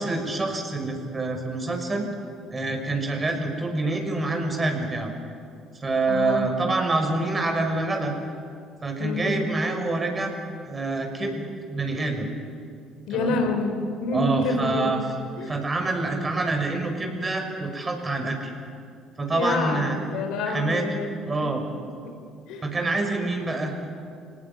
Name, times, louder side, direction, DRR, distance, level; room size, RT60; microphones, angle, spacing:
voice 1, 0.0-2.1 2.5-5.1 5.8-8.1 8.8-10.3 10.7-11.4 11.7-12.3 13.1-13.4 14.1-15.0 15.4-18.5 19.2-19.9 20.5-20.8 21.3-21.6 22.6-23.7, right 2 dB, 25° right, 4 dB, 5.9 m, -26 dB
voice 2, 6.1-6.4 9.0-9.4 13.1-14.9 15.4-15.5 19.3-21.5 22.5-22.7, left 2 dB, 65° left, 5 dB, 3.8 m, -28 dB
26.5 x 18.0 x 9.8 m, 2.3 s
hypercardioid pair, 60°, 0 cm